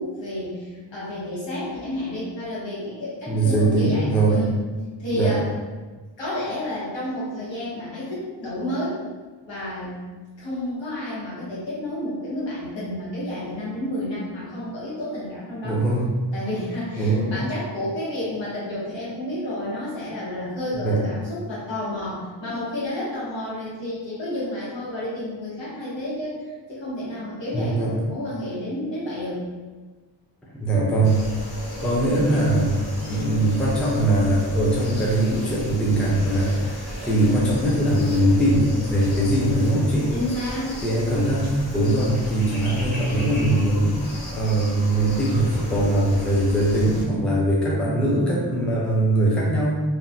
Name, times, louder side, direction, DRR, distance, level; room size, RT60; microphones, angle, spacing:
voice 1, 0.0-4.6 5.0-5.4 6.2-9.0 9.5-10.0 10.4-15.8 16.3-29.4 40.1-40.8, left 1 dB, 75° left, -8 dB, 1.2 m, -30 dB
voice 2, 3.3-4.4 5.1-5.3 15.6-16.1 17.0-17.3 20.8-21.0 27.5-28.0 30.5-31.2 31.8-40.1 40.8-49.8, right 1 dB, 5° left, -5 dB, 0.4 m, -21 dB
sound 1, 31.0-47.0, equal, 55° left, 1.4 m, -35 dB
2.9 x 2.2 x 2.5 m, 1.3 s
wide cardioid pair, 120°, 44 cm